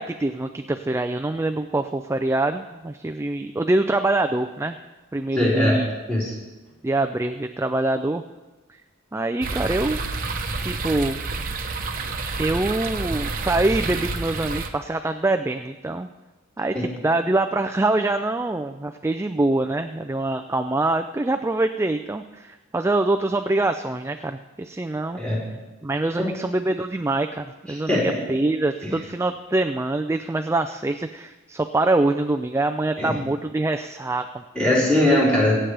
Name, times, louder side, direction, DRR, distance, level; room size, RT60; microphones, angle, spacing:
voice 1, 0.0-4.8 5.1-5.9 6.8-8.2 8.7-8.8 9.1-10.1 10.6-11.2 12.4-16.1 16.6-16.7 17.0-25.2 25.8-34.4, right 2 dB, 15° right, 6 dB, 0.3 m, -24 dB
voice 2, 5.3-5.8 6.1-6.3 16.7-16.8 25.1-25.4 27.7-28.2 28.8-28.9 33.0-33.1 34.5-35.7, left 1 dB, 5° left, -7 dB, 4.6 m, -21 dB
sound 1, 9.4-14.7, right 3 dB, 40° right, 1.0 m, -29 dB
24.0 x 8.7 x 3.4 m, 1.2 s
head